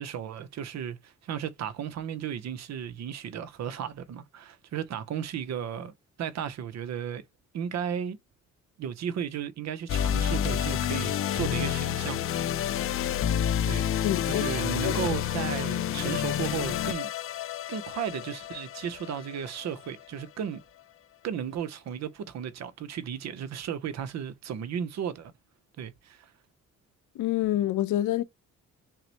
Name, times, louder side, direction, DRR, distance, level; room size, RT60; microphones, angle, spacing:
voice 1, 0.0-7.2 7.5-8.2 8.8-12.8 13.7-13.9 14.3-17.1 17.7-20.6 21.2-25.3 25.8-26.3, right 8 dB, 60° right, 0.7 m, -35 dB
sound 1, 9.9-20.3, left 10 dB, 45° left, 0.4 m, -29 dB
voice 2, 14.0-14.4 14.7-15.0 27.1-28.2, left 13 dB, 85° left, 0.8 m, -27 dB
5.5 x 2.1 x 3.0 m
cardioid pair, 90°, 30 cm